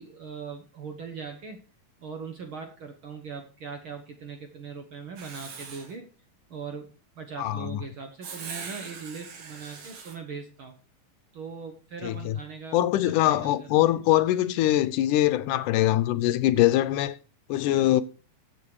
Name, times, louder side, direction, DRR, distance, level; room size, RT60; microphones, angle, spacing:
voice 1, 0.0-1.6 2.0-6.1 6.5-6.9 7.2-10.8 11.3-14.0, right 5 dB, 55° right, 1.6 m, -40 dB
Writing, 5.2-5.9 8.2-10.2, right 5 dB, 85° right, 3.8 m, -41 dB
voice 2, 7.4-7.8 12.0-12.4 12.7-17.2 17.5-18.0, left 14 dB, 80° left, 2.2 m, -23 dB
14.5 x 7.5 x 4.8 m
omnidirectional pair, 3.7 m